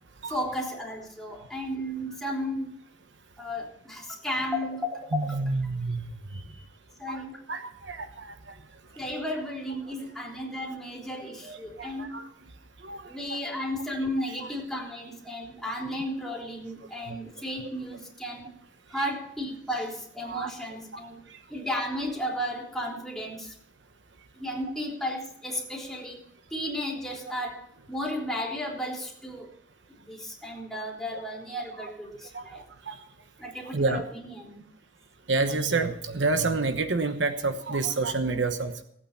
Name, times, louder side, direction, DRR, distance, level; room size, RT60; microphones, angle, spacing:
voice 1, 0.3-2.7 3.4-5.4 7.0-7.4 9.0-12.1 13.1-18.5 18.9-21.2 21.5-23.5 24.4-26.2 26.5-29.5 29.9-32.6 33.4-34.6, equal, ahead, -2 dB, 3.5 m, -34 dB
voice 2, 5.1-6.4 7.1-8.5 11.4-12.3 12.8-13.4 14.3-14.5 17.0-17.2 18.9-19.1 20.2-20.5 20.9-21.0 21.3-21.4 30.7-30.8 31.1-31.2 31.8-31.9 32.3-32.5 32.9-33.0 33.6-34.0 35.3-38.7, right 3 dB, 75° right, 8 dB, 1.1 m, -29 dB
17.5 x 8.8 x 5.8 m, 0.73 s
head